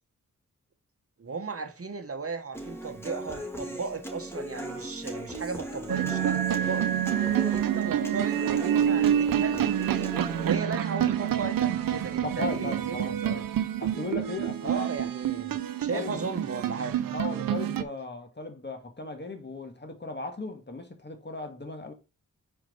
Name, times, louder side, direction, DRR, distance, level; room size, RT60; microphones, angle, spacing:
voice 1, 1.2-6.9 7.5-10.1 10.4-13.4 14.6-17.0, right 4 dB, 45° right, 1.2 m, -36 dB
Human voice / Acoustic guitar, 2.5-10.6, right 1 dB, 5° left, 2.4 m, -38 dB
sound 1, 5.9-17.8, right 10 dB, 90° right, 0.7 m, -27 dB
voice 2, 12.2-13.5 13.8-14.9 15.8-16.3 17.1-21.9, left 3 dB, 30° left, 1.9 m, -37 dB
4.9 x 4.4 x 5.3 m
cardioid pair, 45°, 33 cm